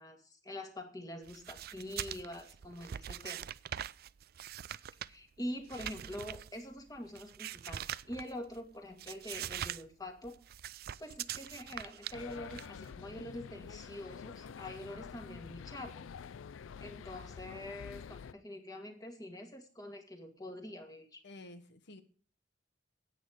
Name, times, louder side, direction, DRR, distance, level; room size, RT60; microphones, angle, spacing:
voice 1, 0.0-3.5 5.1-10.4 11.0-16.0 16.8-21.2, left 1 dB, 20° left, 4 dB, 2.1 m, -45 dB
sound 1, 1.3-8.6 8.9-9.8 10.1-12.9, right 10 dB, 55° right, 0.4 m, -43 dB
sound 2, 12.1-18.3, left 6 dB, 85° left, 0.4 m, -48 dB
voice 2, 14.2-14.6 21.2-22.0, left 2 dB, 65° left, 10 dB, 1.4 m, -53 dB
10.0 x 9.0 x 4.9 m, 0.41 s
head